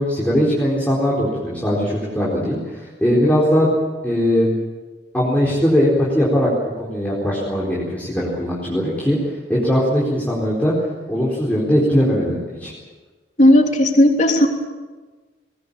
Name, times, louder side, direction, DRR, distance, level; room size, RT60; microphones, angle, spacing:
voice 1, 0.0-3.7 4.0-4.5 5.1-6.5 6.8-9.2 9.5-10.7 11.1-12.7, equal, 10° left, -5 dB, 4.4 m, -19 dB
voice 2, 13.4-14.5, left 1 dB, 40° left, 3 dB, 3.1 m, -14 dB
22.0 x 19.5 x 8.7 m, 1.3 s
head